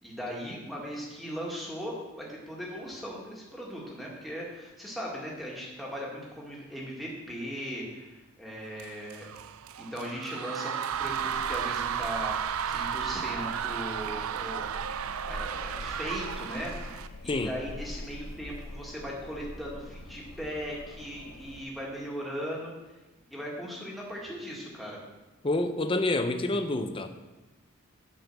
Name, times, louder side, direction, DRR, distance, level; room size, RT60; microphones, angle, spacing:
voice 1, 0.0-9.3 9.8-14.7 15.3-22.7 23.3-25.0, equal, ahead, -4 dB, 1.9 m, -38 dB
sound 1, 8.8-17.1, right 8 dB, 85° right, 0.4 m, -33 dB
sound 2, 10.9-21.6, left 1 dB, 70° left, 0.8 m, -44 dB
voice 2, 25.4-27.1, left 2 dB, 25° left, 8 dB, 0.6 m, -28 dB
9.0 x 5.6 x 6.8 m, 1.1 s
head